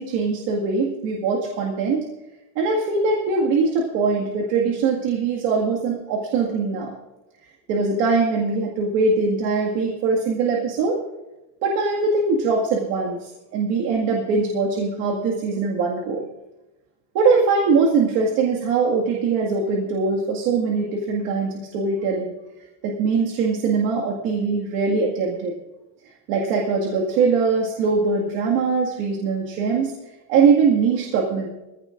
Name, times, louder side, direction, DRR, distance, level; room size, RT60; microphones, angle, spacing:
voice 1, 0.0-2.1 2.6-7.0 7.7-11.0 11.6-16.3 17.1-22.3 22.8-25.5 26.3-29.9 30.3-31.5, right 4 dB, 90° right, -1 dB, 2.0 m, -22 dB
23.5 x 15.5 x 2.6 m, 1.0 s
cardioid pair, 175°, 32 cm